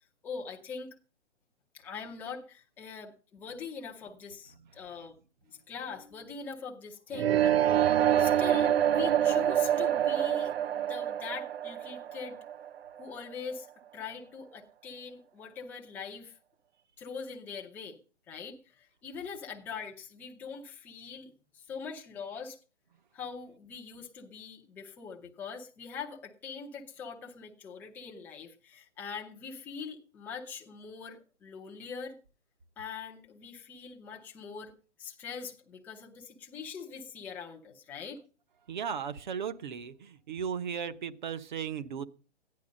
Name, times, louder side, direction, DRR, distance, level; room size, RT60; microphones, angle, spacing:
voice 1, 0.2-0.9 1.7-5.2 5.5-7.6 8.2-12.4 13.0-13.7 13.9-16.4 17.0-18.0 18.3-22.6 23.1-32.2 32.8-34.7 35.0-38.2, left 5 dB, 5° left, 0 dB, 0.7 m, -42 dB
sound 1, 7.1-13.0, right 10 dB, 60° right, 0.6 m, -26 dB
voice 2, 38.7-42.1, right 7 dB, 40° right, 13 dB, 1.0 m, -36 dB
14.5 x 10.5 x 5.2 m, 0.36 s
hypercardioid pair, 155°, 35 cm